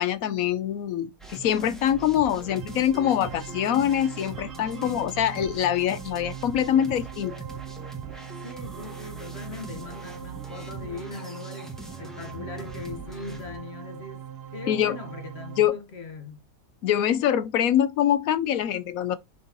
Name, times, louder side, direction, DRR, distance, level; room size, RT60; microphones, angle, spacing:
voice 1, 0.0-7.3 14.7-15.0 15.6-15.8 16.8-19.2, left 10 dB, 70° left, 0.8 m, -24 dB
sound 1, 1.2-13.6, right 3 dB, ahead, 1.3 m, -42 dB
sound 2, 2.1-15.7, right 9 dB, 85° right, 0.5 m, -41 dB
voice 2, 4.7-5.0 8.4-14.2 14.5-16.5, left 3 dB, 40° left, 1.4 m, -40 dB
6.3 x 5.4 x 2.9 m
omnidirectional pair, 1.9 m